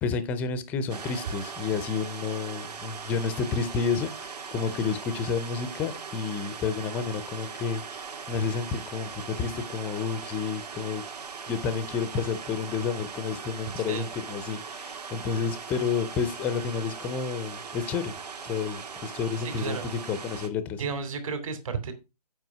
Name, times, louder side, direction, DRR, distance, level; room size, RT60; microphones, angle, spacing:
voice 1, 0.0-11.0 11.5-18.1 18.4-19.8 20.1-20.8, left 5 dB, 5° left, 13 dB, 0.4 m, -30 dB
sound 1, 0.9-20.5, right 5 dB, 75° right, 2.2 m, -40 dB
voice 2, 19.4-19.9 20.8-21.9, right 5 dB, 55° right, 8 dB, 2.7 m, -32 dB
7.9 x 5.2 x 6.1 m, 0.27 s
hypercardioid pair, 155°, 21 cm